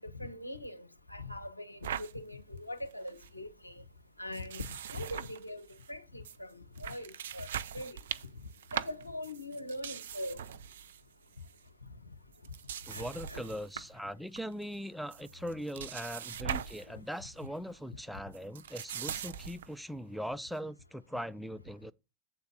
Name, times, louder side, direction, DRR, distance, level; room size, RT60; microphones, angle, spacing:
voice 1, 0.0-3.8 4.2-7.5 7.7-8.0 8.7-10.4 12.9-13.5 16.9-17.0, left 1 dB, 85° left, 0.9 m, -42 dB
sound 1, 1.8-2.1 2.6-2.7 2.9-3.3 4.3-5.9 6.2-6.4 6.8-11.0 11.3-11.6 12.3-14.0 14.4-14.8 15.1-16.9 17.2-17.4 18.3-19.7, right 8 dB, 60° right, 0.5 m, -41 dB
voice 2, 12.9-21.9, equal, ahead, 0.3 m, -40 dB
8.0 x 3.9 x 6.6 m
figure-of-eight pair, 90°, 0 cm